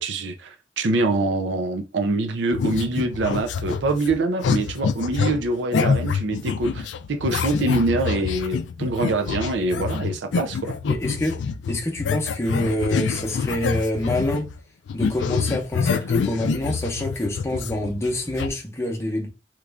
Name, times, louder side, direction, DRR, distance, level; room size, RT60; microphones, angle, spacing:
voice 1, 0.0-10.7, right 2 dB, 90° right, 0.5 m, -24 dB
sound 1, 2.5-14.6 14.9-18.5, left 5 dB, 85° left, 0.3 m, -26 dB
voice 2, 10.9-11.4 11.7-14.5 14.9-19.3, left 1 dB, 15° left, 0.7 m, -26 dB
3.1 x 2.4 x 3.4 m
head